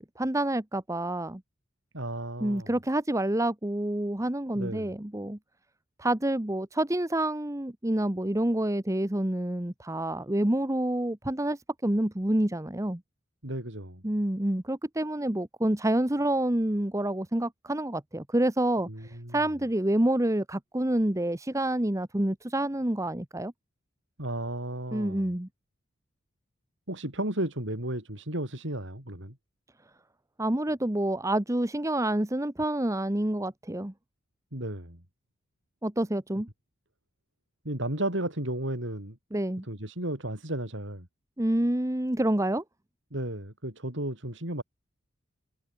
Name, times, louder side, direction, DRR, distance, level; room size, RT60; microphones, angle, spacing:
voice 1, 0.0-1.4 2.4-5.4 6.0-13.0 14.0-23.5 24.9-25.5 30.4-33.9 35.8-36.5 39.3-39.6 41.4-42.6, right 1 dB, 15° right, 1.2 m, -28 dB
voice 2, 1.9-2.7 4.6-4.9 13.4-14.0 18.9-19.4 24.2-25.3 26.9-29.4 34.5-35.0 37.7-39.2 39.6-41.1 43.1-44.6, right 1 dB, 65° right, 7.1 m, -34 dB
head